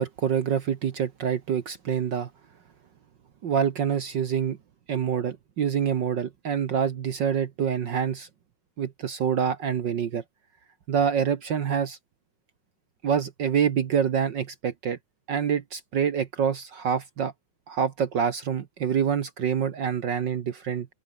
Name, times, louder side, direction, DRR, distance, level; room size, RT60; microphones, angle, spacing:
voice 1, 0.0-2.3 3.4-4.6 4.9-8.3 8.8-10.2 10.9-12.0 13.0-15.0 15.3-17.3 17.7-20.9, right 7 dB, 60° right, 1.1 m, -26 dB
open air
omnidirectional pair, 3.6 m